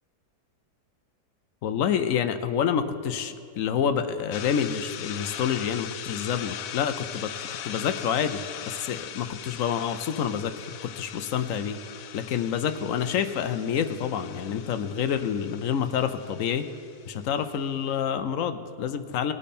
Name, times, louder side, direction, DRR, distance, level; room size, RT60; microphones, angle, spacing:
voice 1, 1.6-7.3 7.6-11.8 12.1-16.7 17.0-19.3, left 8 dB, 65° left, 10 dB, 0.9 m, -28 dB
sound 1, 4.3-17.7, left 10 dB, 90° left, 1.3 m, -40 dB
20.0 x 8.6 x 4.3 m, 2.4 s
omnidirectional pair, 1.8 m